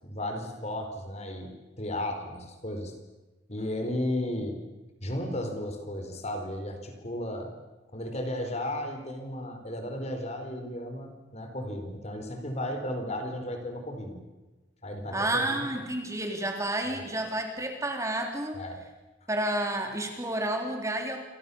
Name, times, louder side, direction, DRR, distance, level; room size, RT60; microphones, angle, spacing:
voice 1, 0.0-2.9 3.5-4.6 5.0-7.5 7.9-14.2 14.8-15.8 16.8-17.0 18.5-18.8, left 1 dB, 35° left, 5 dB, 4.4 m, -34 dB
voice 2, 15.1-18.6 19.3-21.2, right 1 dB, 15° right, 3 dB, 3.5 m, -30 dB
28.0 x 26.0 x 7.2 m, 1.2 s
head